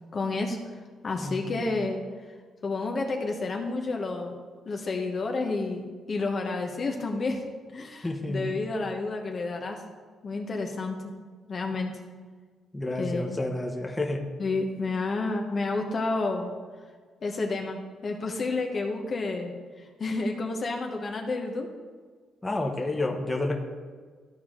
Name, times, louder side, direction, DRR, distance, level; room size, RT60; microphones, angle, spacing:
voice 1, 0.1-0.6 1.0-2.0 2.6-4.4 4.6-7.4 7.7-9.8 10.2-11.0 11.5-11.9 13.0-13.5 14.4-16.5 17.2-21.7 22.7-22.8, left 3 dB, 45° left, 2 dB, 1.0 m, -30 dB
voice 2, 1.2-1.6 8.0-8.6 12.7-14.3 22.4-23.6, left 2 dB, 15° left, 1 dB, 1.1 m, -30 dB
13.0 x 4.6 x 3.8 m, 1.5 s
cardioid pair, 90°, 0 cm